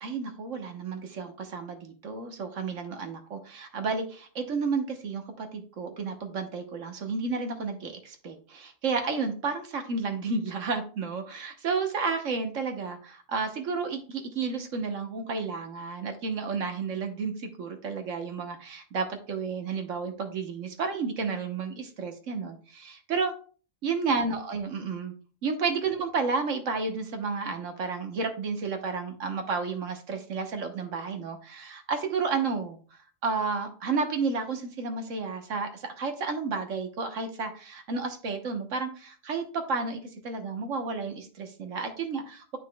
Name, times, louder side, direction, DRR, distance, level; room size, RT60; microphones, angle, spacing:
voice 1, 0.0-23.3 23.8-25.1 25.4-42.6, right 4 dB, 80° right, 6 dB, 1.4 m, -31 dB
9.4 x 5.8 x 2.2 m, 0.39 s
omnidirectional pair, 1.3 m